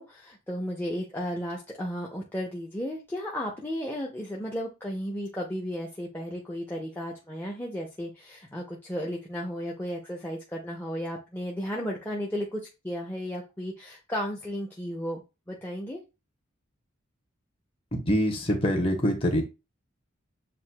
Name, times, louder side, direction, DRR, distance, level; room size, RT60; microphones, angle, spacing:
voice 1, 0.0-16.0, equal, 10° left, 0.5 m, -34 dB
voice 2, 17.9-19.4, equal, 25° left, 0.9 m, -25 dB
7.4 x 2.6 x 2.2 m
head